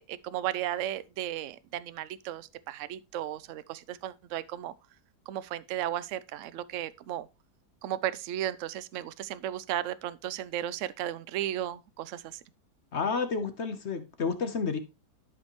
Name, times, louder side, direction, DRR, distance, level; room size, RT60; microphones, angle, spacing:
voice 1, 0.0-4.7 5.3-7.3 7.8-12.4, right 12 dB, 65° right, 0.8 m, -35 dB
voice 2, 12.9-14.8, left 5 dB, 50° left, 1.1 m, -30 dB
12.0 x 5.3 x 3.0 m
omnidirectional pair, 1.8 m